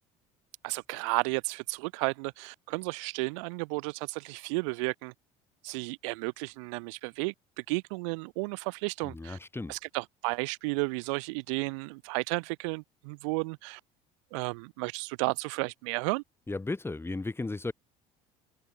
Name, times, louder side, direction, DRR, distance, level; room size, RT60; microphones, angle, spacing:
voice 1, 0.6-5.1 5.6-9.4 9.7-13.8 14.3-16.2, right 31 dB, 85° right, 1.9 m, -33 dB
voice 2, 9.0-9.7 16.5-17.7, left 3 dB, 15° left, 6.1 m, -35 dB
supercardioid pair, 85°, 16 cm